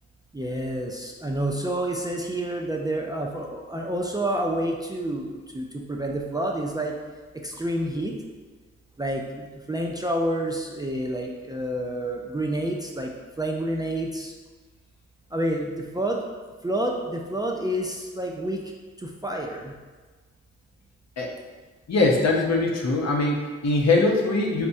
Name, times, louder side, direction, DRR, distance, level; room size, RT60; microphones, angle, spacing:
voice 1, 0.3-7.0 7.3-8.2 9.0-14.3 15.3-16.2 16.6-18.6 19.0-19.7, right 1 dB, 15° right, 0 dB, 0.4 m, -29 dB
voice 2, 21.9-24.7, left 3 dB, 60° left, 0 dB, 0.7 m, -22 dB
4.3 x 2.1 x 2.6 m, 1.4 s
supercardioid pair, 45°, 30 cm